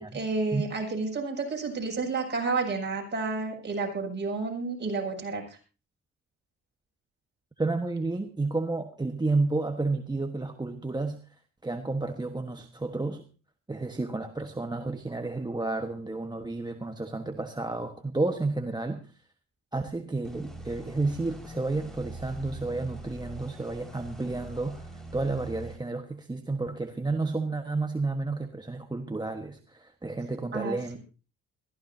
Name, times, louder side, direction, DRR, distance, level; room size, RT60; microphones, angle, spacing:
voice 1, 0.1-5.4 30.5-31.0, right 4 dB, 35° right, 1 dB, 7.1 m, -30 dB
voice 2, 7.6-11.2 11.6-13.3 13.7-19.0 19.7-31.0, right 3 dB, 15° right, 5 dB, 1.3 m, -31 dB
sound 1, 20.2-25.8, right 1 dB, ahead, 5.2 m, -43 dB
22.0 x 15.0 x 2.8 m, 0.34 s
cardioid pair, 90°, 30 cm